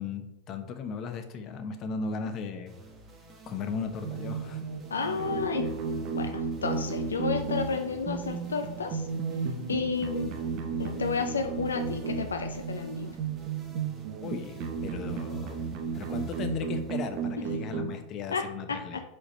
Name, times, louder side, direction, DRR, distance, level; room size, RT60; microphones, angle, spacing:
voice 1, 0.0-2.7 3.5-4.6 14.2-15.6 15.9-19.0, left 5 dB, 40° left, 7 dB, 0.9 m, -36 dB
sound 1, 2.7-18.1, right 2 dB, 30° right, 1.6 m, -52 dB
sound 2, 4.0-18.0, right 5 dB, 50° right, 0.9 m, -34 dB
voice 2, 4.9-5.7 6.1-9.1 9.7-10.3 10.8-13.2 18.3-19.0, left 5 dB, 80° left, 6 dB, 0.5 m, -31 dB
5.0 x 4.9 x 5.1 m, 0.90 s
figure-of-eight pair, 90°, 0 cm